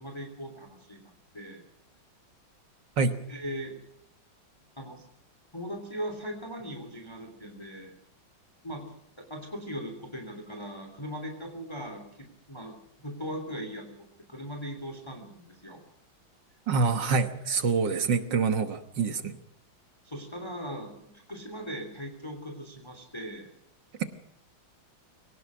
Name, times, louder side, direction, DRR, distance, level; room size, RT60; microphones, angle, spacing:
voice 1, 0.0-1.6 3.3-3.7 4.8-5.0 5.5-7.9 8.6-8.9 9.2-15.8 17.4-17.6 20.0-23.5, equal, 15° left, 4 dB, 3.0 m, -39 dB
voice 2, 16.7-19.4, right 4 dB, 65° right, 9 dB, 1.9 m, -26 dB
22.5 x 18.5 x 6.2 m, 0.71 s
omnidirectional pair, 2.2 m